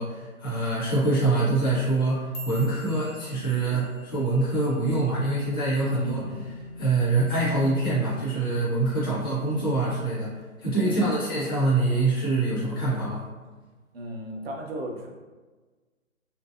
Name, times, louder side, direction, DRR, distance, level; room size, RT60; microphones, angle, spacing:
voice 1, 0.0-6.4 6.8-10.3 10.6-13.2, right 2 dB, 20° left, -9 dB, 0.4 m, -25 dB
sound 1, 1.9-6.3 6.6-7.0 7.4-7.8 8.2-8.4 9.0-9.4 9.8-10.6 11.0-11.4 12.2-12.3, right 3 dB, 75° left, 0.8 m, -47 dB
sound 2, 4.9-9.1, left 1 dB, 85° right, 0.8 m, -44 dB
voice 2, 5.9-6.4 9.0-9.2 10.8-11.0 13.9-15.1, right 1 dB, 45° right, 0 dB, 0.6 m, -36 dB
3.3 x 2.6 x 2.4 m, 1.3 s
hypercardioid pair, 140°, 42 cm